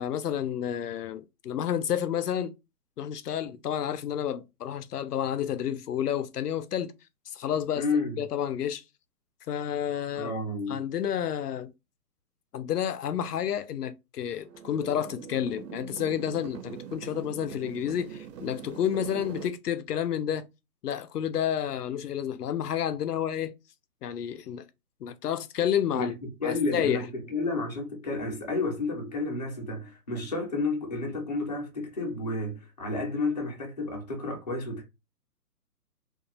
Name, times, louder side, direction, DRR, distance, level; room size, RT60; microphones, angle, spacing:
voice 1, 0.0-2.5 3.0-6.9 7.3-7.8 8.2-8.8 9.5-10.3 10.7-11.7 12.5-20.5 20.8-23.5 24.0-24.7 25.0-26.2 26.4-27.1, left 9 dB, 75° left, 0.5 m, -30 dB
voice 2, 7.7-8.2 10.2-10.8 25.9-34.9, left 3 dB, 25° left, 0.5 m, -31 dB
sound 1, 14.4-19.5, right 8 dB, 85° right, 0.7 m, -42 dB
2.4 x 2.2 x 2.9 m
hypercardioid pair, 160°, 48 cm